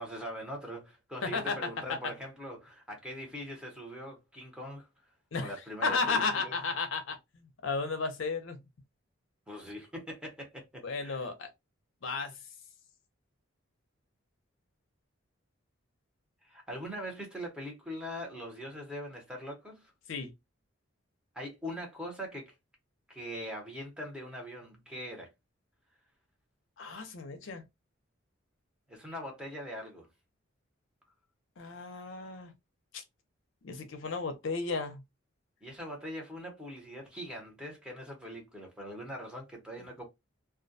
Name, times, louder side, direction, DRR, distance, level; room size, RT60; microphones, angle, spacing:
voice 1, 0.0-4.9 5.3-6.6 9.5-11.3 16.4-19.9 21.3-22.5 23.1-25.3 28.9-30.1 35.6-40.0, equal, 5° right, 0.8 m, -42 dB
voice 2, 1.2-1.6 5.3-5.5 5.8-8.6 10.8-11.5 12.0-12.3 20.1-20.3 26.8-27.6 31.6-32.5 32.9-33.0 33.6-35.0, left 4 dB, 70° left, 0.5 m, -33 dB
2.3 x 2.1 x 2.6 m
head